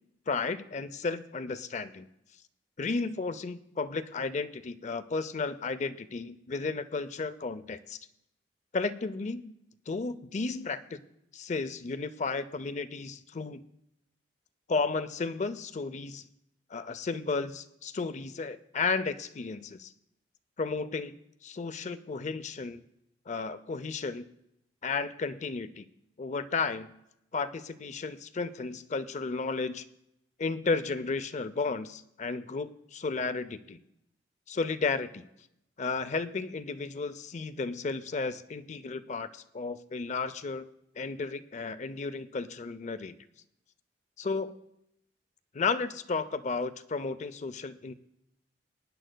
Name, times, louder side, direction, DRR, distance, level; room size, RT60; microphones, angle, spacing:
voice 1, 0.3-2.1 2.8-8.0 8.7-9.5 9.9-11.0 11.3-13.6 14.7-16.3 16.7-19.9 20.6-22.8 23.3-24.3 24.8-25.9 26.2-26.9 27.3-29.8 30.4-33.8 34.5-35.3 35.8-40.7 41.0-43.1 44.2-44.5 45.5-47.9, left 4 dB, 40° left, 13 dB, 0.5 m, -33 dB
23.0 x 10.0 x 2.2 m, 0.81 s
head